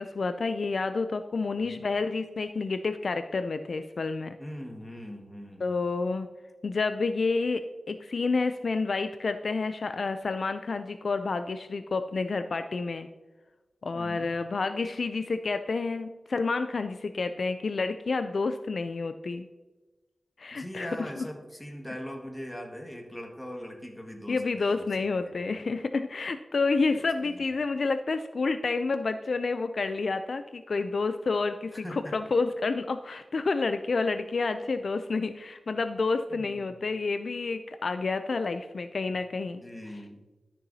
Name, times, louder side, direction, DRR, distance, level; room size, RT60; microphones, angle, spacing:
voice 1, 0.0-4.3 5.6-6.3 6.6-13.1 13.8-19.5 20.4-21.2 24.3-31.9 32.1-39.6, left 4 dB, 75° left, 9 dB, 0.4 m, -29 dB
voice 2, 4.4-5.7 13.9-14.3 20.5-25.6 27.0-27.4 31.7-32.2 36.3-36.8 39.6-40.2, equal, 15° left, 2 dB, 1.7 m, -41 dB
12.5 x 6.9 x 2.7 m, 1.2 s
wide cardioid pair, 60°, 0 cm